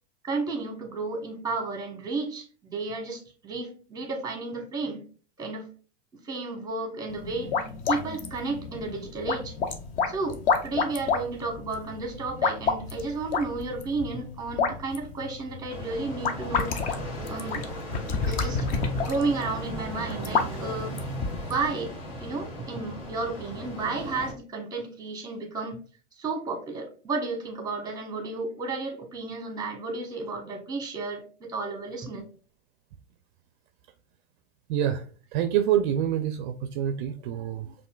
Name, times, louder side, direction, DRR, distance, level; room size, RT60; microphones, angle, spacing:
voice 1, 0.2-5.0 5.4-5.7 6.2-7.5 7.9-9.5 10.1-16.8 17.3-17.6 18.2-21.0 21.5-21.9 22.2-25.8 26.2-32.2, right 3 dB, 10° right, 1.1 m, -32 dB
sound 1, 7.1-21.7, left 5 dB, 25° left, 0.4 m, -30 dB
sound 2, 15.7-24.3, equal, 50° left, 1.5 m, -36 dB
voice 2, 34.7-35.0 35.3-37.7, right 10 dB, 55° right, 0.4 m, -26 dB
5.4 x 2.6 x 2.3 m
hypercardioid pair, 120°, 32 cm